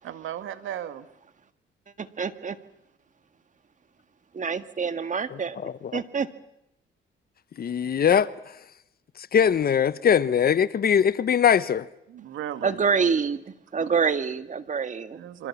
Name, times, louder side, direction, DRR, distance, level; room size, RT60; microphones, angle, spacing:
voice 1, 0.0-1.1 12.1-12.8 15.1-15.5, right 11 dB, 80° right, 2.0 m, -35 dB
voice 2, 2.0-2.6 4.3-5.6 5.9-6.3 12.6-13.4 13.7-15.2, right 6 dB, 40° right, 1.8 m, -26 dB
voice 3, 5.6-6.0 7.6-8.3 9.2-11.9, left 8 dB, 50° left, 1.0 m, -21 dB
27.5 x 25.5 x 7.3 m
cardioid pair, 90°, 20 cm